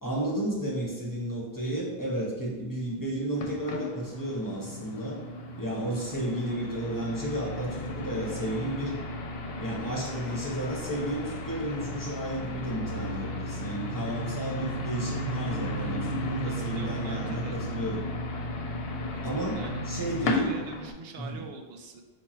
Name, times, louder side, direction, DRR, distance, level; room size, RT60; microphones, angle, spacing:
voice 1, 0.0-5.2 5.5-9.0 9.5-18.0 19.2-20.5 21.2-21.4, right 1 dB, 20° left, -4 dB, 1.0 m, -32 dB
sound 1, 3.4-20.9, left 1 dB, 75° left, 0.8 m, -34 dB
voice 2, 16.4-17.6 19.1-19.8 20.4-22.0, right 4 dB, 75° right, 3 dB, 0.8 m, -43 dB
4.5 x 2.6 x 4.3 m, 1.1 s
omnidirectional pair, 1.0 m